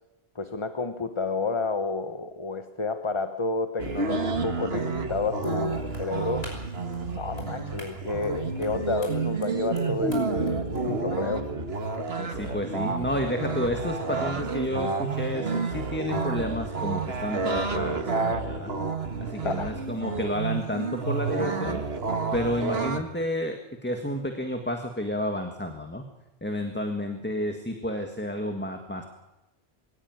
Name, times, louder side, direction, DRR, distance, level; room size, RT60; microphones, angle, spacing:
voice 1, 0.3-6.5 7.1-11.4 19.4-19.7, left 3 dB, 30° left, 8 dB, 1.1 m, -30 dB
sound 1, 3.8-23.0, right 4 dB, 70° right, 2.0 m, -30 dB
sound 2, 5.3-11.0, equal, 75° left, 6.3 m, -47 dB
voice 2, 12.2-18.7 19.2-21.8 22.3-26.1 26.4-29.0, left 1 dB, 10° left, 5 dB, 1.7 m, -31 dB
23.5 x 17.5 x 9.5 m, 1.0 s
omnidirectional pair, 1.1 m